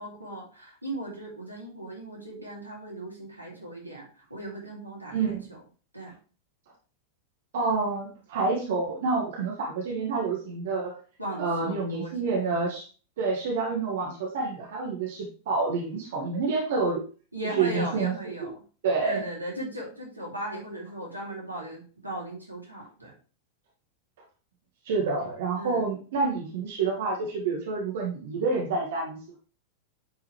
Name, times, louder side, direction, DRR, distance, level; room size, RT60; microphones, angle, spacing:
voice 1, 0.0-5.6 5.9-6.1 11.2-12.4 17.3-18.6 19.0-23.1 25.5-25.8, right 1 dB, 85° right, -2 dB, 2.9 m, -38 dB
voice 2, 5.1-5.5 7.5-11.0 11.4-12.9 13.2-17.0 17.6-18.1 18.4-18.5 18.8-19.2 24.8-29.4, right 4 dB, 55° right, -1 dB, 2.0 m, -28 dB
10.0 x 5.9 x 3.3 m, 0.38 s
figure-of-eight pair, 90°, 0 cm